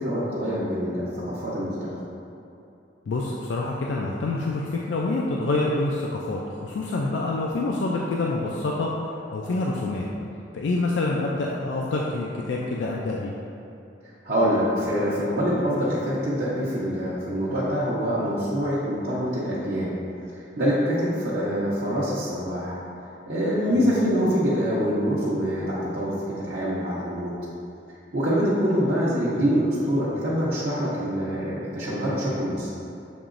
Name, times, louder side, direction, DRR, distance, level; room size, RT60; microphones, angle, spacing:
voice 1, 0.0-1.9 14.2-19.9 20.3-22.8 23.3-27.3 28.1-32.7, equal, 60° right, -10 dB, 0.7 m, -25 dB
voice 2, 3.1-8.9 9.3-10.1 10.5-13.3 23.8-23.9, left 2 dB, 75° left, -2 dB, 0.4 m, -27 dB
7.0 x 2.9 x 2.5 m, 2.8 s
head